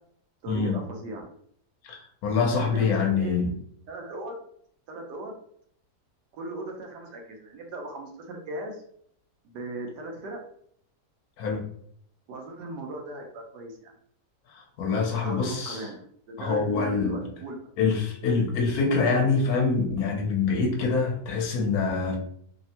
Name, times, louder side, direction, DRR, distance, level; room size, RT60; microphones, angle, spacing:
voice 1, 0.4-1.3 2.5-3.5 3.9-4.4 4.9-5.4 6.3-8.8 9.4-10.4 12.3-13.9 15.2-17.6, right 2 dB, 85° right, 2 dB, 1.3 m, -38 dB
voice 2, 1.9-3.5 11.4-11.6 14.5-15.8 16.4-17.2 17.8-22.2, left 4 dB, 65° left, 1 dB, 1.2 m, -25 dB
3.3 x 2.1 x 2.8 m, 0.65 s
omnidirectional pair, 1.8 m